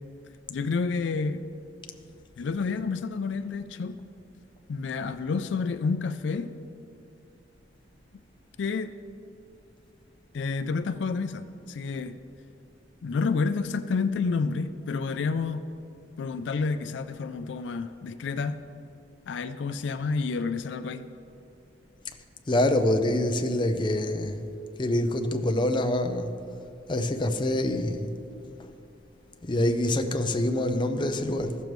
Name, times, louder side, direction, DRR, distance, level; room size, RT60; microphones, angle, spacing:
voice 1, 0.5-1.4 2.4-4.0 4.7-6.5 8.6-8.9 10.3-12.2 13.0-15.7 16.2-18.6 19.3-21.1, left 4 dB, 85° left, 0.4 m, -29 dB
voice 2, 22.5-24.5 24.8-26.3 26.9-28.1 29.4-31.6, left 1 dB, 25° left, 0.5 m, -25 dB
15.0 x 6.8 x 3.1 m
head